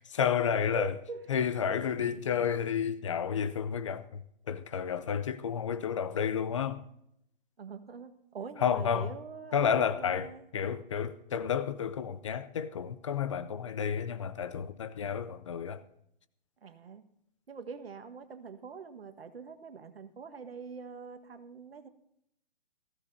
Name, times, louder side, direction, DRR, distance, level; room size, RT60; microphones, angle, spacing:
voice 1, 0.1-0.9 1.3-6.8 8.6-9.1 9.5-15.8, left 7 dB, 35° left, 0.5 m, -31 dB
voice 2, 0.7-1.3 1.7-1.8 7.6-10.4 16.6-17.0 17.5-21.9, right 5 dB, 85° right, 1.5 m, -44 dB
18.5 x 15.5 x 2.7 m
hypercardioid pair, 160°, 29 cm